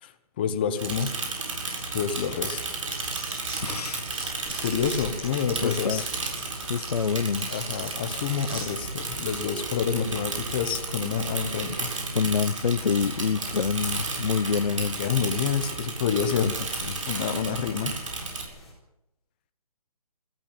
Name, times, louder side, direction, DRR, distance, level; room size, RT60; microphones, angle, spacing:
voice 1, 0.4-1.1 1.9-2.6 4.6-6.0 7.5-11.9 15.0-17.9, left 7 dB, 15° left, 1.0 m, -28 dB
sound 1, 0.8-2.6 2.9-8.7, right 3 dB, 20° right, 7.1 m, -42 dB
Bicycle / Mechanisms, 0.8-18.4, right 3 dB, 55° right, 7.8 m, -33 dB
voice 2, 3.6-4.0 5.6-6.0 6.7-7.5 12.1-15.0 16.4-16.5 16.9-17.0, left 6 dB, 80° left, 0.9 m, -26 dB
sound 2, 4.3-18.7, left 1 dB, ahead, 4.1 m, -47 dB
19.0 x 15.0 x 9.1 m
hypercardioid pair, 175°, 19 cm